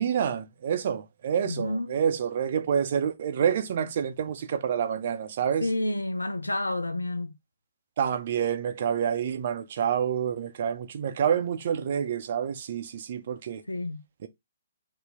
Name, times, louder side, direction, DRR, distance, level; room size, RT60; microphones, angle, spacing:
voice 1, 0.0-5.7 8.0-13.6 14.2-14.3, right 8 dB, 50° right, 0.6 m, -28 dB
voice 2, 1.4-2.0 5.6-7.3 13.7-14.0, left 1 dB, 85° left, 0.5 m, -29 dB
2.8 x 2.8 x 3.5 m
figure-of-eight pair, 130°, 0 cm